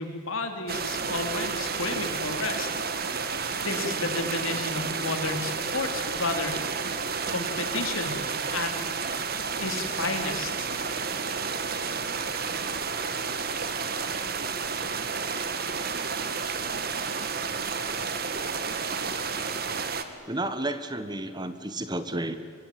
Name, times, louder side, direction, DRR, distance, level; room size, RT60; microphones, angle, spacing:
voice 1, 0.0-2.7 3.0-6.6 7.3-8.2 8.5-8.7 9.6-10.7, left 3 dB, 80° left, 5 dB, 3.5 m, -32 dB
sound 1, 0.7-20.0, right 5 dB, 45° right, 1.8 m, -31 dB
voice 2, 20.3-22.3, right 1 dB, 20° right, 11 dB, 1.3 m, -31 dB
24.5 x 22.5 x 9.3 m, 2.2 s
head